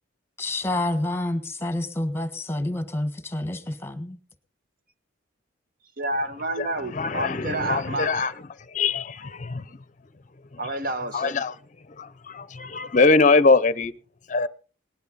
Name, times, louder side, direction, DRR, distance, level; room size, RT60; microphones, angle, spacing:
voice 1, 0.4-4.2, left 1 dB, 15° left, 1.4 m, -28 dB
voice 2, 6.0-8.3 10.6-11.3, right 2 dB, 50° right, 1.2 m, -29 dB
voice 3, 6.6-8.3 8.7-9.6 10.6-10.7 11.1-11.5 12.0-13.9 14.3-14.5, left 3 dB, 40° left, 0.7 m, -22 dB
19.0 x 11.5 x 4.0 m
head